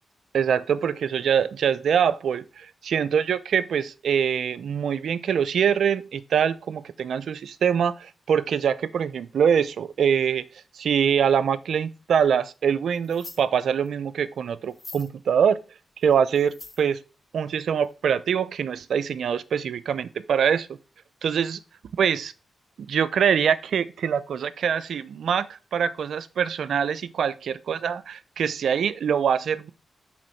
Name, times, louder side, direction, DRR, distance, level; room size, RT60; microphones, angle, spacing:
voice 1, 0.3-10.4 10.7-15.6 16.0-17.0 17.3-20.7 21.2-21.6 22.0-22.3 22.9-29.7, right 7 dB, 80° right, 0.4 m, -24 dB
sound 1, 12.9-13.4 13.9-14.0 14.6-15.1 16.0-16.9 17.8-17.9 18.1-18.2, left 2 dB, 35° left, 1.7 m, -43 dB
7.4 x 3.6 x 4.4 m
supercardioid pair, 50°, 0 cm